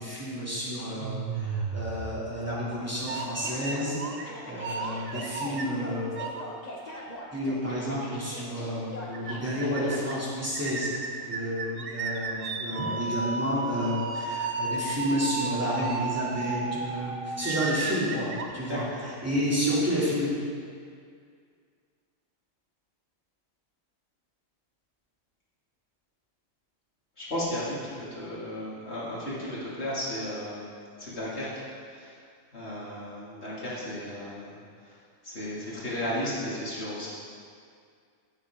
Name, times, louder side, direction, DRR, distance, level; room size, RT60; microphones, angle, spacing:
voice 1, 0.0-6.1 7.3-20.3, equal, 10° right, -8 dB, 2.8 m, -30 dB
sound 1, 1.0-2.6 3.1-4.3 4.6-6.4 6.9-7.0 8.0-8.1 8.4-8.5 8.8-8.9 9.1-9.3 9.6-10.1 10.5-19.2, right 4 dB, 55° right, 0.8 m, -33 dB
sound 2, 3.4-10.2, left 1 dB, 30° left, 1.5 m, -42 dB
voice 2, 18.6-19.0 27.2-30.7 31.0-32.2 32.5-37.1, left 1 dB, 50° left, -8 dB, 2.9 m, -35 dB
15.5 x 7.7 x 3.7 m, 2.2 s
omnidirectional pair, 1.4 m